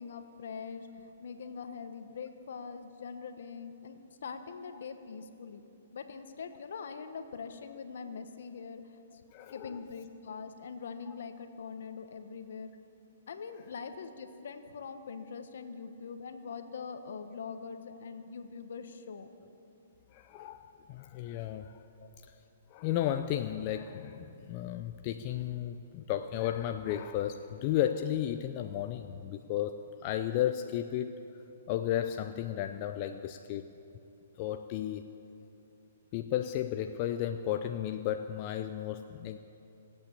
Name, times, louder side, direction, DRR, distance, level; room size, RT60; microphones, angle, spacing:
voice 1, 0.0-5.6 5.9-9.2 9.5-12.7 13.3-19.3 22.0-22.1, left 5 dB, 70° left, 8 dB, 1.2 m, -43 dB
voice 2, 9.3-9.8 20.1-21.8 22.7-31.2 31.7-33.7 34.4-35.1 36.1-39.4, left 11 dB, 35° left, 7 dB, 0.5 m, -33 dB
18.0 x 8.6 x 8.2 m, 2.8 s
hypercardioid pair, 145°, 0 cm